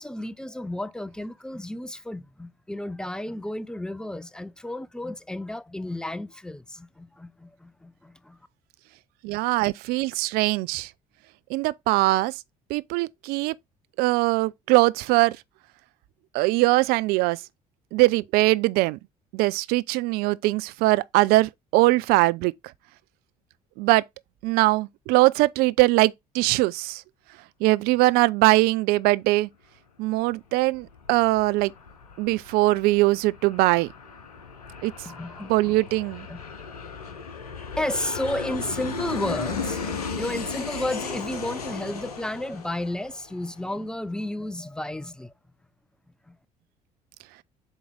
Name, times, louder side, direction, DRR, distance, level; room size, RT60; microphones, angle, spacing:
voice 1, 0.0-8.4 35.1-35.7 36.3-36.4 37.8-45.3 46.3-46.4, left 1 dB, 5° left, 0.5 m, -32 dB
voice 2, 9.2-10.9 11.5-12.3 12.7-13.5 14.0-15.4 16.3-17.4 17.9-19.0 19.3-22.5 23.8-24.0 24.4-27.0 27.6-29.5 30.0-31.7 32.2-33.9 34.8-34.9 35.5-36.3, right 20 dB, 55° right, 0.4 m, -21 dB
Aircraft, 30.5-43.8, left 5 dB, 80° left, 0.8 m, -36 dB
7.9 x 3.1 x 3.8 m
figure-of-eight pair, 55°, 19 cm